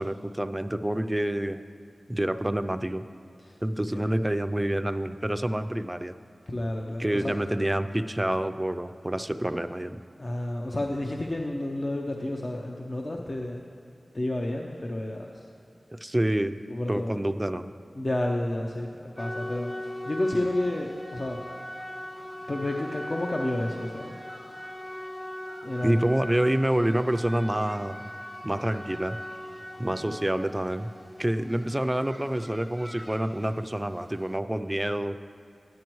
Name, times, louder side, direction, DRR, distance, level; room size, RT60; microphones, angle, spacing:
voice 1, 0.0-1.6 2.1-3.0 3.6-6.1 7.0-10.0 15.9-16.6 16.9-17.7 25.8-28.0 28.4-29.2 29.8-30.9 31.2-35.2, right 1 dB, 20° right, 9 dB, 0.4 m, -27 dB
voice 2, 6.5-7.4 10.2-13.6 14.1-15.5 16.7-17.2 18.0-21.4 22.5-24.2 25.6-26.2 30.0-30.2 31.4-31.5, left 1 dB, 55° left, 0 dB, 0.7 m, -31 dB
sound 1, 19.2-34.4, equal, 15° left, 0.9 m, -40 dB
13.5 x 10.5 x 3.1 m, 2.5 s
cardioid pair, 40°, 0 cm